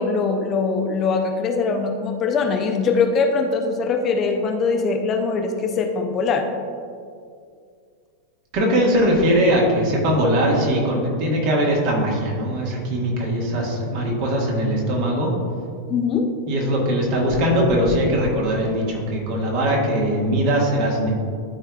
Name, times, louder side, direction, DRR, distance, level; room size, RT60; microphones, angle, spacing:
voice 1, 0.0-6.5 15.9-16.3, left 4 dB, 30° left, 4 dB, 0.6 m, -22 dB
voice 2, 8.5-15.3 16.5-21.1, equal, 45° right, -1 dB, 1.5 m, -20 dB
12.0 x 4.6 x 2.3 m, 2.2 s
figure-of-eight pair, 90°, 0 cm